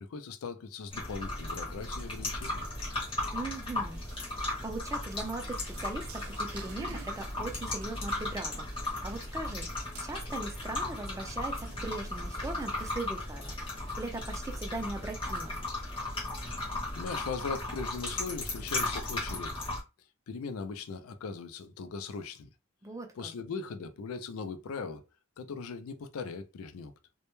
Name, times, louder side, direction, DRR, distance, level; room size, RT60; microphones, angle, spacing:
voice 1, 0.0-2.7 16.5-16.6 16.9-19.7 20.3-22.5 23.2-25.0 25.4-26.9, left 4 dB, 80° left, 0.4 m, -39 dB
sound 1, 0.9-19.8, left 2 dB, 25° left, 0.7 m, -36 dB
sound 2, 1.9-15.8, right 5 dB, 80° right, 0.4 m, -53 dB
voice 2, 3.3-13.6 14.0-15.6 22.8-23.3, right 2 dB, 15° right, 0.4 m, -40 dB
2.1 x 2.1 x 3.0 m
head